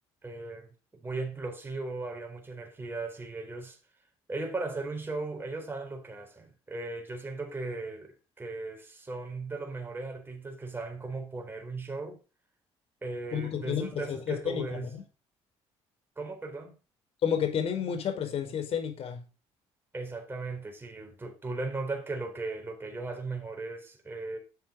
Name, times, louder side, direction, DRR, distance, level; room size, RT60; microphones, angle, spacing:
voice 1, 0.2-3.8 4.3-12.2 13.0-14.9 16.2-16.8 19.9-24.4, right 3 dB, 20° right, 4.4 m, -37 dB
voice 2, 13.3-15.0 17.2-19.2, left 8 dB, 60° left, 4.9 m, -31 dB
12.0 x 7.6 x 3.9 m
cardioid pair, 100°, 11 cm